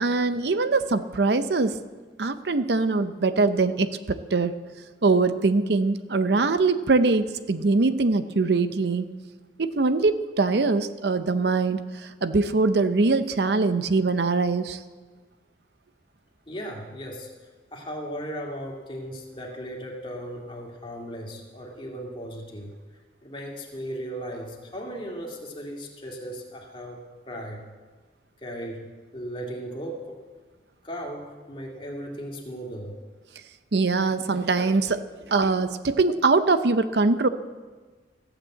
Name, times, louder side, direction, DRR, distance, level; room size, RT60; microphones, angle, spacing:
voice 1, 0.0-1.8 2.2-4.5 5.0-9.1 9.6-14.8 33.7-37.3, right 3 dB, 65° right, 11 dB, 0.6 m, -23 dB
voice 2, 16.5-17.3 17.7-22.7 23.2-27.6 28.4-30.2 30.8-32.9, equal, 30° left, -1 dB, 2.3 m, -37 dB
15.0 x 9.0 x 7.7 m, 1.4 s
head